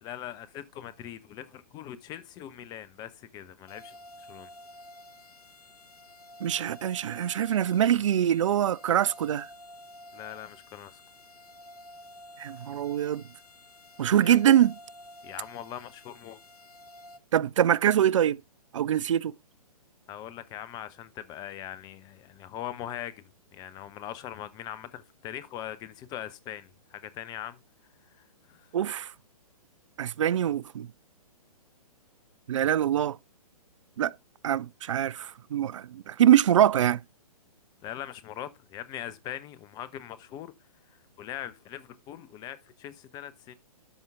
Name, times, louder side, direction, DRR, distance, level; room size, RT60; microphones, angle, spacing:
voice 1, 0.0-4.5 10.1-11.0 14.2-14.4 15.2-16.4 20.1-23.1 23.5-27.6 28.2-28.7 37.8-40.5 41.2-43.5, left 11 dB, 20° left, 0.9 m, -41 dB
sound 1, 3.7-17.2, left 1 dB, 75° left, 1.0 m, -50 dB
voice 2, 6.4-9.5 12.4-13.2 14.0-14.7 17.3-18.4 18.7-19.3 28.7-29.1 30.0-30.9 32.5-33.2 34.0-34.2 34.4-37.0, right 10 dB, 55° right, 0.4 m, -24 dB
12.5 x 5.6 x 3.6 m
figure-of-eight pair, 120°, 19 cm